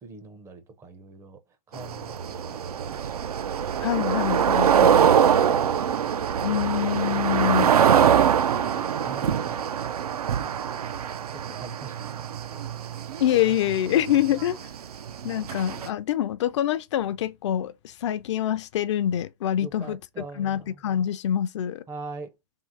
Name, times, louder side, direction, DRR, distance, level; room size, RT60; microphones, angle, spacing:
voice 1, 0.0-1.4 1.7-3.3 8.6-9.6 10.4-10.6 11.3-12.7 13.4-13.6 19.6-20.8 21.9-22.3, right 3 dB, 15° right, 0.5 m, -43 dB
sound 1, 1.7-15.9, right 8 dB, 80° right, 0.5 m, -24 dB
voice 2, 3.8-4.9 6.4-7.7 13.2-14.7 15.2-20.0 20.3-21.8, left 11 dB, 50° left, 0.5 m, -25 dB
3.7 x 2.5 x 4.6 m
hypercardioid pair, 130°, 19 cm